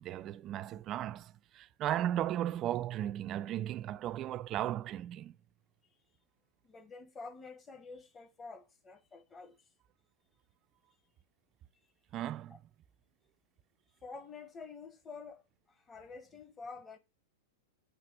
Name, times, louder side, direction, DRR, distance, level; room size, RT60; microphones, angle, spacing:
voice 1, 0.0-5.4 12.1-12.6, right 12 dB, 30° right, 0.3 m, -36 dB
voice 2, 6.6-9.7 12.5-12.6 14.0-17.0, left 4 dB, 20° left, 1.0 m, -49 dB
7.5 x 3.3 x 5.9 m
hypercardioid pair, 135°, 0 cm